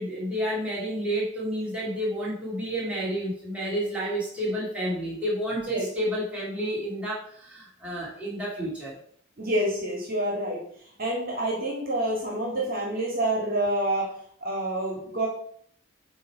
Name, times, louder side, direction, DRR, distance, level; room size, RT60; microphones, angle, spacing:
voice 1, 0.0-8.9, equal, 5° right, -7 dB, 2.2 m, -30 dB
voice 2, 9.4-10.6 11.0-14.1 14.4-15.3, right 1 dB, 40° right, -2 dB, 1.7 m, -27 dB
8.2 x 3.2 x 4.6 m, 0.62 s
head